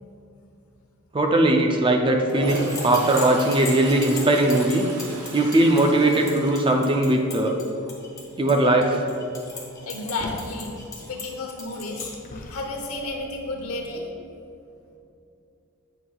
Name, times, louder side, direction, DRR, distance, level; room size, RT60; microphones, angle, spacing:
voice 1, 1.1-4.8 5.3-7.6 8.4-9.0, right 1 dB, 20° right, 2 dB, 0.4 m, -19 dB
Toilet flush, 2.2-7.4 7.8-8.2 12.7-12.8 13.0-13.8, right 2 dB, 85° right, 0.8 m, -37 dB
sound 1, 2.3-12.1, left 3 dB, 15° left, 1.0 m, -38 dB
voice 2, 7.8-8.3 9.8-10.7 11.1-14.1, left 2 dB, 75° left, 1 dB, 0.9 m, -32 dB
sound 2, 10.2-10.7 11.5-12.8 13.6-13.7, left 2 dB, 35° left, 0.5 m, -38 dB
7.9 x 5.7 x 2.3 m, 2.6 s
head